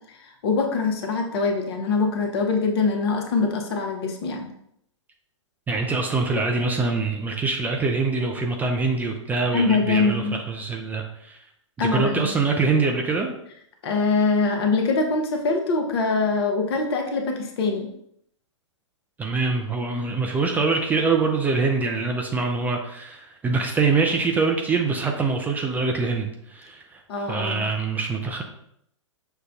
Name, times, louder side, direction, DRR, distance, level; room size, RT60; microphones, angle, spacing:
voice 1, 0.2-4.5 9.5-10.4 11.8-12.3 13.8-17.9 27.1-27.7, left 4 dB, 55° left, 2 dB, 0.8 m, -23 dB
voice 2, 5.7-11.4 11.8-13.3 19.2-28.4, right 4 dB, 10° right, 2 dB, 0.3 m, -24 dB
6.3 x 2.2 x 2.6 m, 0.73 s
hypercardioid pair, 120°, 16 cm